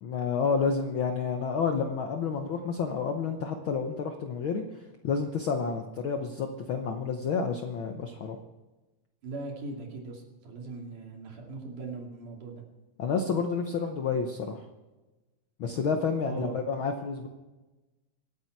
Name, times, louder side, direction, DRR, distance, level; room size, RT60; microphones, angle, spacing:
voice 1, 0.0-4.6 5.0-8.4 13.0-14.6 15.6-17.3, left 5 dB, 70° left, 5 dB, 1.2 m, -29 dB
voice 2, 9.2-12.6 16.3-16.6, right 3 dB, 80° right, 0 dB, 4.2 m, -39 dB
25.5 x 8.7 x 4.6 m, 1.1 s
omnidirectional pair, 3.6 m